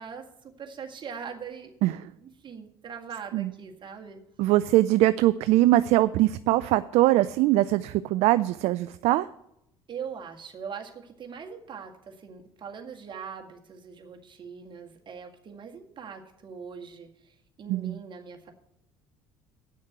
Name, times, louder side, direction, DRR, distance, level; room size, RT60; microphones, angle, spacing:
voice 1, 0.0-1.7 2.2-4.2 9.9-18.5, right 6 dB, 40° right, 2 dB, 1.8 m, -41 dB
voice 2, 4.4-9.3 17.7-18.0, right 16 dB, 60° right, 15 dB, 0.4 m, -22 dB
9.0 x 6.4 x 8.1 m, 0.79 s
hypercardioid pair, 65°, 13 cm